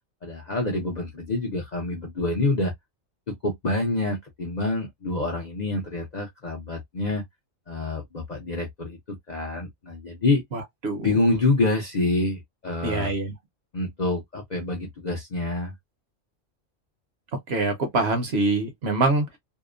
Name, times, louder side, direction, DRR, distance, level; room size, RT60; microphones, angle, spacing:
voice 1, 0.2-2.7 3.3-7.2 7.7-10.4 11.0-13.1 13.7-15.7, left 2 dB, 45° left, 0.6 m, -27 dB
voice 2, 10.5-11.1 12.8-13.3 17.5-19.4, right 3 dB, 55° right, 1.0 m, -25 dB
2.8 x 2.0 x 2.3 m
omnidirectional pair, 1.3 m